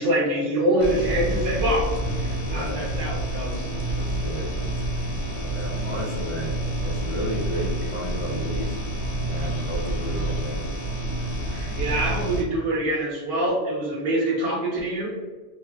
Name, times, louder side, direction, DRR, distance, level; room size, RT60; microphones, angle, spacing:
voice 1, 0.0-1.9 2.2-3.7 11.5-15.1, right 1 dB, 50° right, -5 dB, 1.1 m, -25 dB
sound 1, 0.8-12.4, right 1 dB, 70° left, 1.0 m, -28 dB
voice 2, 2.5-3.0 3.9-4.6 5.4-6.5 6.8-8.8 9.3-10.6, equal, 40° left, -4 dB, 0.5 m, -33 dB
3.1 x 2.2 x 3.4 m, 1.3 s
omnidirectional pair, 1.2 m